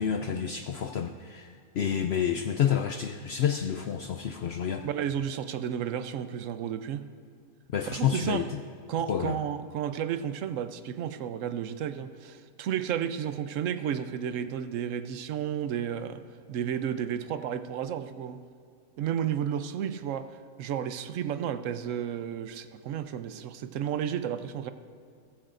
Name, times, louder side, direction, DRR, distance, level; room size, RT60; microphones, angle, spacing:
voice 1, 0.0-4.8 7.7-8.5 9.1-9.4, left 8 dB, 80° left, 6 dB, 0.5 m, -29 dB
voice 2, 4.8-7.0 7.9-8.5 8.9-16.2 16.5-18.4 19.0-20.3 20.6-24.7, right 9 dB, 65° right, 11 dB, 0.9 m, -32 dB
15.5 x 14.5 x 2.5 m, 2.3 s
omnidirectional pair, 1.7 m